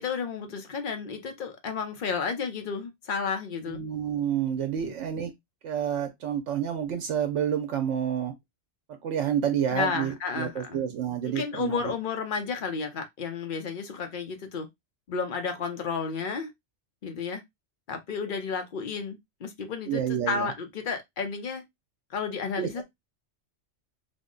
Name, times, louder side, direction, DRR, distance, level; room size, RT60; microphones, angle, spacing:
voice 1, 0.0-3.8 4.8-4.9 9.7-10.8 11.2-14.7 15.1-16.5 17.0-17.4 17.9-21.6 22.1-22.8, left 5 dB, 50° left, 0.8 m, -32 dB
voice 2, 3.7-5.3 5.6-8.3 9.0-11.9 19.9-20.5 22.6-22.8, right 9 dB, 80° right, 0.9 m, -29 dB
3.6 x 2.1 x 3.8 m
omnidirectional pair, 1.2 m